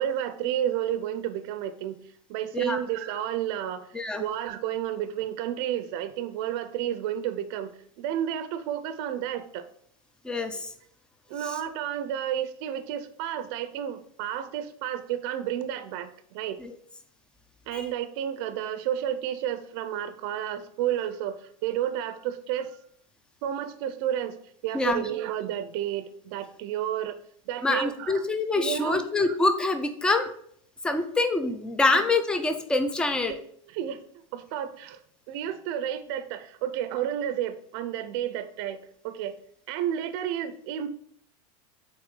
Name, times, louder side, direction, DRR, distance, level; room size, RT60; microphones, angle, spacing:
voice 1, 0.0-2.0 2.3-9.7 11.3-16.6 17.7-22.8 23.4-24.4 24.6-27.2 27.5-28.2 28.5-29.0 31.9-32.0 33.2-33.4 33.7-35.0 35.3-39.4 39.7-40.9, right 10 dB, 45° right, 11 dB, 0.5 m, -31 dB
voice 2, 10.2-10.7 16.6-16.7 17.7-17.9 24.7-25.0 27.6-30.3 30.8-33.3, left 2 dB, 5° left, 8 dB, 0.4 m, -25 dB
7.7 x 4.1 x 3.8 m, 0.65 s
supercardioid pair, 170°, 17 cm